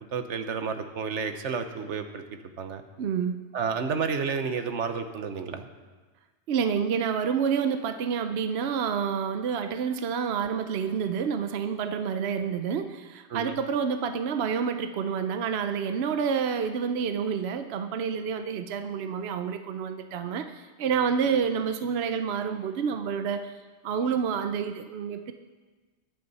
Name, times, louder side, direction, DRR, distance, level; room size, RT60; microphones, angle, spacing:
voice 1, 0.1-2.8 3.5-5.7 13.3-13.6, right 5 dB, 85° right, 8 dB, 1.2 m, -31 dB
voice 2, 3.0-3.5 6.5-23.5 23.8-25.3, right 6 dB, 65° right, 8 dB, 0.9 m, -28 dB
21.5 x 8.7 x 4.1 m, 1.3 s
omnidirectional pair, 1.2 m